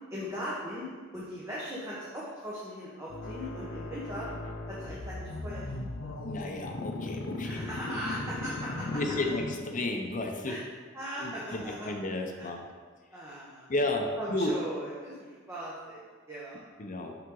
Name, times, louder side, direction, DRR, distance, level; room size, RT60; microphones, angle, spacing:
voice 1, 0.1-0.8 1.1-4.3 4.7-6.2 7.4-9.0 10.5-10.6 10.9-11.9 12.4-12.5 13.1-13.7 14.2-16.0 16.3-16.6, equal, 15° right, -7 dB, 1.1 m, -39 dB
sound 1, 3.1-10.0, left 2 dB, 85° left, 0.7 m, -38 dB
voice 2, 6.2-7.6 8.9-10.6 11.2-12.6 13.7-14.6 16.8-17.2, left 2 dB, 40° left, 3 dB, 0.7 m, -32 dB
6.9 x 5.7 x 3.8 m, 1.5 s
head